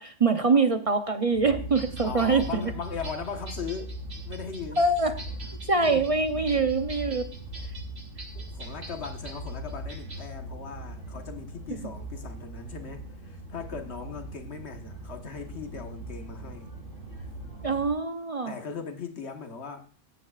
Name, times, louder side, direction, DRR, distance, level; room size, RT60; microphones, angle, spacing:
voice 1, 0.0-2.7 4.8-5.1 5.7-7.2 11.7-11.8 17.6-18.5, right 3 dB, 35° right, 0.7 m, -24 dB
sound 1, 1.3-17.9, right 1 dB, 90° left, 4.2 m, -40 dB
sound 2, 1.7-10.3, right 2 dB, 55° right, 3.1 m, -46 dB
voice 2, 2.0-4.0 4.3-4.9 5.8-6.7 8.3-16.7 18.4-19.9, left 5 dB, 60° left, 1.6 m, -39 dB
15.0 x 9.7 x 2.4 m
omnidirectional pair, 1.3 m